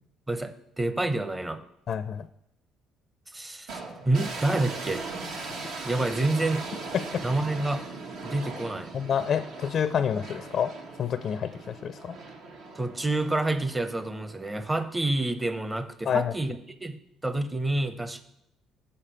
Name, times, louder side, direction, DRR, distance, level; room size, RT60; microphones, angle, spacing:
voice 1, 0.3-1.6 3.3-5.0 5.8-6.7 7.2-7.9 8.2-8.9 12.8-18.2, right 2 dB, 15° right, 10 dB, 0.7 m, -28 dB
voice 2, 1.9-2.3 6.9-7.2 8.9-10.7 11.0-12.2 16.1-16.3, left 8 dB, 55° left, 12 dB, 0.4 m, -28 dB
sound 1, 3.7-14.9, right 3 dB, 70° right, 1.2 m, -39 dB
7.2 x 6.6 x 5.6 m, 0.80 s
supercardioid pair, 85°, 0 cm